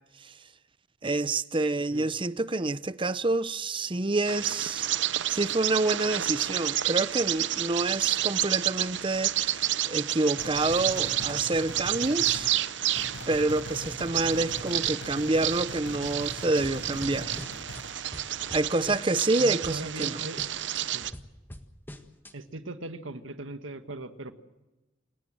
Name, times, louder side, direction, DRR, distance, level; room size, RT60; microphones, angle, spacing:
voice 1, 1.0-4.9 5.3-12.5 13.3-17.4 18.5-20.2, right 2 dB, 25° right, 0.7 m, -28 dB
Bird vocalization bird call bird song, 4.3-21.1, right 12 dB, 65° right, 0.7 m, -30 dB
sound 1, 10.4-12.5 12.9-17.9, left 1 dB, 80° left, 5.0 m, -41 dB
sound 2, 16.6-17.8 18.1-19.3 19.6-20.1 20.4-22.3, equal, 10° left, 1.6 m, -45 dB
voice 2, 19.4-20.4 20.8-21.1 22.3-24.3, right 2 dB, 90° right, 1.6 m, -39 dB
28.5 x 17.0 x 7.7 m
head